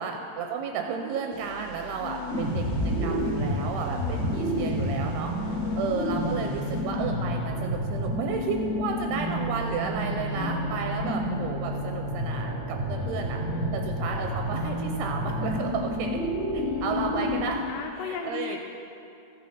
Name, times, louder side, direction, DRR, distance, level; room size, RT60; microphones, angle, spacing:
voice 1, 0.0-2.6 3.0-13.4 13.7-16.2 16.5-17.6 18.0-18.6, right 6 dB, 80° right, 3 dB, 2.5 m, -33 dB
sound 1, 1.3-7.8, equal, 55° left, 2.7 m, -45 dB
voice 2, 2.0-2.5 3.9-4.3 5.5-5.8 10.3-10.8 12.9-13.9 16.6-18.6, left 8 dB, 80° left, 3 dB, 2.6 m, -39 dB
sound 2, 2.3-17.4, equal, 25° left, 1.6 m, -29 dB
14.5 x 7.6 x 5.5 m, 2.6 s
omnidirectional pair, 4.9 m